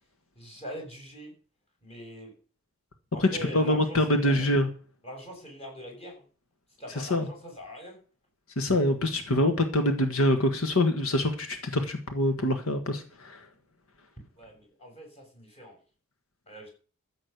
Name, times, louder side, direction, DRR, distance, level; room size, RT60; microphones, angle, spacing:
voice 1, 0.3-1.3 1.8-2.3 3.1-4.5 5.0-6.2 6.8-8.0 14.4-15.7 16.5-16.7, equal, 30° left, 0 dB, 6.7 m, -42 dB
voice 2, 3.2-4.7 6.9-7.3 8.6-13.4, left 1 dB, 85° left, 7 dB, 1.5 m, -25 dB
14.0 x 7.6 x 6.7 m, 0.40 s
head